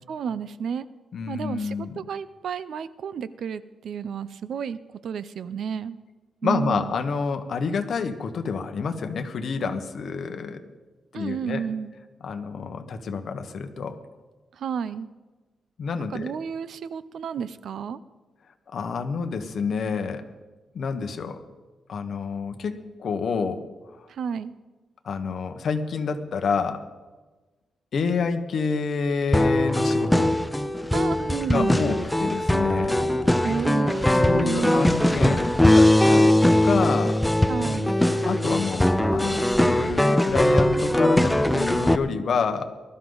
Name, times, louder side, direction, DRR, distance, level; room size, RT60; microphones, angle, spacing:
voice 1, 0.1-0.9 1.3-6.0 6.4-7.0 11.1-11.9 14.6-15.1 16.1-18.0 24.1-24.5 30.9-31.9 33.4-34.9 37.5-38.0, right 7 dB, 70° right, 15 dB, 0.6 m, -31 dB
voice 2, 1.1-2.0 6.4-10.6 11.1-11.7 12.2-14.0 15.8-16.3 18.7-20.2 20.7-21.4 21.9-23.7 23.9-24.1 25.0-26.8 27.9-30.4 31.5-33.0 34.1-37.2 38.2-42.7, left 5 dB, 55° left, 7 dB, 1.2 m, -28 dB
sound 1, 29.3-42.0, left 1 dB, 5° left, 0.5 m, -20 dB
20.0 x 12.5 x 4.0 m, 1.2 s
wide cardioid pair, 160°, 0 cm